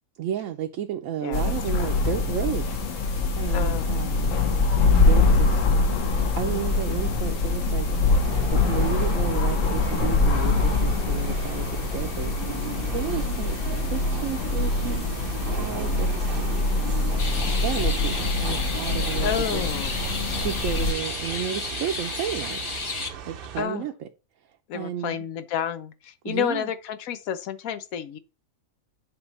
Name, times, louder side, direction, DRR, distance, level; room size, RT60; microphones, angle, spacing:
voice 1, 0.2-2.8 3.3-4.4 4.8-5.7 6.4-7.9 8.4-12.7 12.9-13.6 13.9-15.0 15.5-16.1 17.6-18.1 18.4-19.6 20.2-22.6 23.3-23.9 24.7-25.2 26.2-26.7, right 10 dB, 75° right, 1.0 m, -32 dB
voice 2, 1.2-1.9 3.5-3.9 19.2-20.0 23.6-23.9 24.7-28.2, left 9 dB, 85° left, 1.1 m, -30 dB
sound 1, 1.3-20.9, left 3 dB, 65° left, 1.3 m, -24 dB
sound 2, 3.8-23.6, right 8 dB, 50° right, 0.7 m, -38 dB
sound 3, 17.2-23.1, left 3 dB, 30° left, 0.6 m, -32 dB
7.9 x 3.0 x 5.3 m
omnidirectional pair, 1.4 m